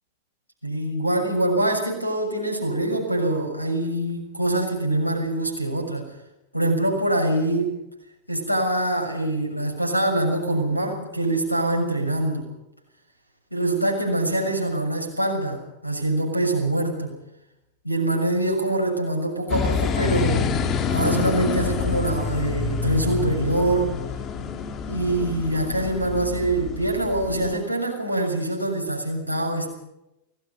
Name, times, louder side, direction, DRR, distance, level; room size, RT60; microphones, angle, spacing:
voice 1, 0.6-6.1 6.5-7.8 8.3-12.5 13.5-17.1 17.8-20.5 20.9-23.9 24.9-29.7, right 1 dB, 90° left, 4 dB, 6.5 m, -24 dB
sound 1, 19.5-27.6, left 6 dB, 30° left, 2.6 m, -27 dB
28.5 x 18.5 x 5.4 m, 0.88 s
figure-of-eight pair, 90°, 0 cm